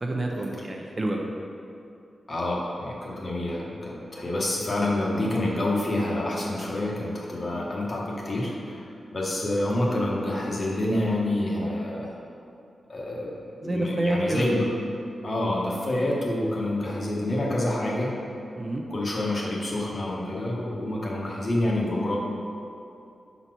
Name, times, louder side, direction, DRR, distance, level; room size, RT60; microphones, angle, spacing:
voice 1, 0.0-1.3 13.6-14.5 18.6-18.8, right 1 dB, 25° right, 1 dB, 0.5 m, -28 dB
voice 2, 2.3-12.2 12.9-14.8 15.2-18.2 18.9-22.2, left 1 dB, 35° left, -3 dB, 1.1 m, -27 dB
5.5 x 4.1 x 6.0 m, 2.7 s
wide cardioid pair, 155°, 0 cm